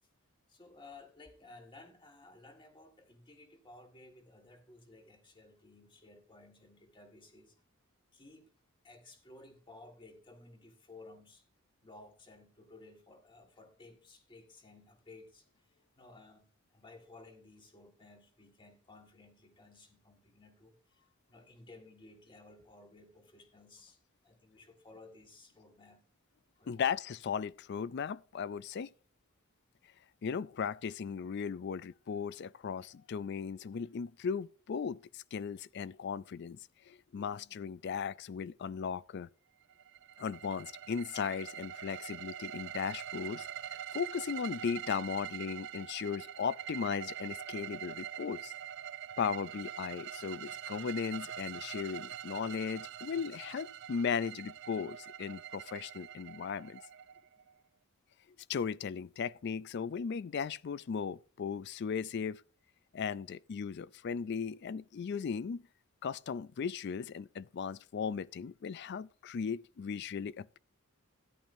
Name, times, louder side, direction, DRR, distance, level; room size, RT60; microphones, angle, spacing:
voice 1, 0.5-7.6 8.1-8.5 8.8-11.5 11.8-26.0 26.6-26.7 33.3-33.4, left 2 dB, 20° left, 1.7 m, -56 dB
voice 2, 26.7-28.9 30.2-36.6 36.9-39.3 40.2-48.5 49.2-56.8 58.5-62.4 62.9-65.6 66.0-70.6, left 6 dB, 50° left, 0.4 m, -37 dB
sound 1, 39.7-57.5, right 10 dB, 55° right, 0.4 m, -44 dB
13.5 x 10.5 x 2.6 m
head